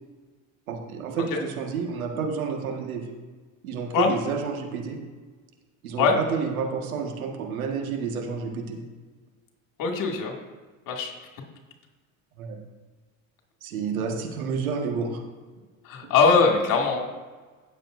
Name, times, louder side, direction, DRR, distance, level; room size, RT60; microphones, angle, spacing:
voice 1, 0.7-3.0 3.6-5.0 5.8-8.8 12.4-12.6 13.6-15.2, right 5 dB, 85° right, 2 dB, 1.7 m, -30 dB
voice 2, 9.8-10.3 10.9-11.1 15.8-17.0, left 5 dB, 50° left, 1 dB, 2.5 m, -21 dB
17.0 x 7.4 x 2.7 m, 1.4 s
hypercardioid pair, 85°, 41 cm